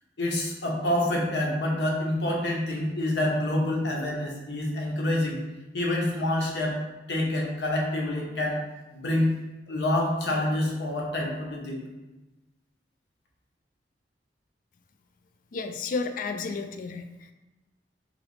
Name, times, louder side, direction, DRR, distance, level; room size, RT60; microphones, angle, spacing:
voice 1, 0.2-5.4 5.7-6.8 7.1-8.6 8.9-9.3 9.7-11.8, left 1 dB, 70° left, -1 dB, 0.9 m, -27 dB
voice 2, 15.5-17.0, left 4 dB, 50° left, 7 dB, 0.3 m, -31 dB
3.9 x 2.9 x 3.2 m, 1.1 s
head